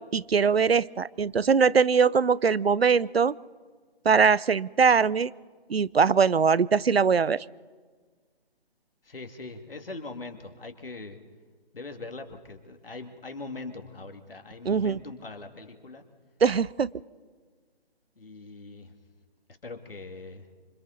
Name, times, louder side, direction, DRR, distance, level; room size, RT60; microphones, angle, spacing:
voice 1, 0.0-3.4 4.0-5.3 5.7-7.4 14.7-15.0 16.4-16.9, right 6 dB, 75° right, 21 dB, 0.6 m, -22 dB
voice 2, 9.0-11.2 11.7-16.0 18.2-18.9 19.6-20.5, left 3 dB, 60° left, 6 dB, 2.3 m, -41 dB
26.5 x 25.5 x 4.0 m, 1.5 s
figure-of-eight pair, 145°, 31 cm